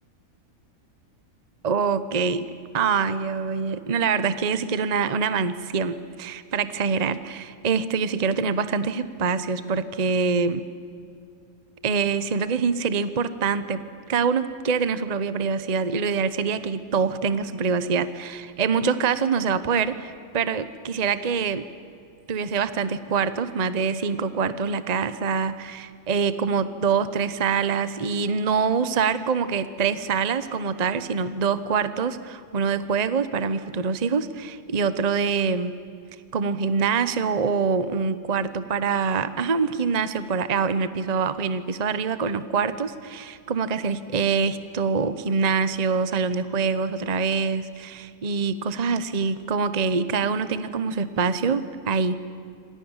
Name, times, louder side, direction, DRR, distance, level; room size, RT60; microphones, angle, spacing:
voice 1, 1.6-2.4 2.7-10.7 11.8-13.8 14.1-21.7 22.3-35.7 36.3-52.2, right 5 dB, 30° right, 13 dB, 0.9 m, -25 dB
27.5 x 26.0 x 7.3 m, 2.5 s
omnidirectional pair, 1.7 m